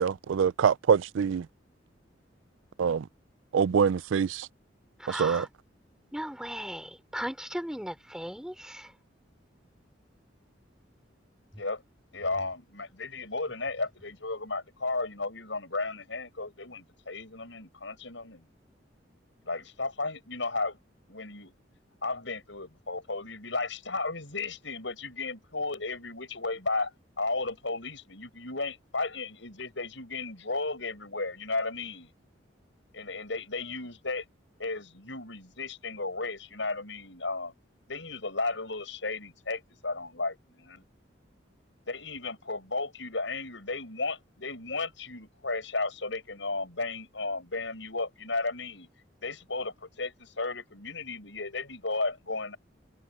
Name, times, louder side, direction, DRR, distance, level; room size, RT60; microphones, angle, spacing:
voice 1, 0.0-1.4 2.8-3.0 3.5-4.5 5.1-5.5, right 7 dB, 85° right, 0.4 m, -25 dB
voice 2, 5.0-5.5 6.1-8.9, equal, 5° right, 4.5 m, -37 dB
voice 3, 12.1-18.4 19.5-20.8 21.1-21.5 22.0-26.9 27.2-32.1 32.9-34.2 34.6-37.5 37.9-40.8 41.9-48.9 49.2-52.6, left 3 dB, 75° left, 7.2 m, -34 dB
head